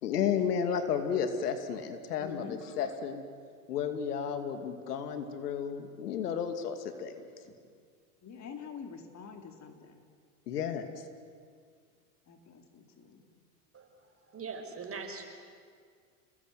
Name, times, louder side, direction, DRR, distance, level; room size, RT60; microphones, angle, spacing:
voice 1, 0.0-2.5 2.8-3.2 3.7-7.2 10.5-10.9, left 7 dB, 85° left, 8 dB, 2.7 m, -32 dB
voice 2, 2.2-2.6 7.4-7.6 8.2-10.0 12.3-13.2, left 6 dB, 35° left, 5 dB, 3.9 m, -46 dB
voice 3, 13.7-15.3, right 5 dB, 30° right, 4 dB, 5.7 m, -42 dB
30.0 x 20.5 x 9.5 m, 2.1 s
hypercardioid pair, 90°, 45 cm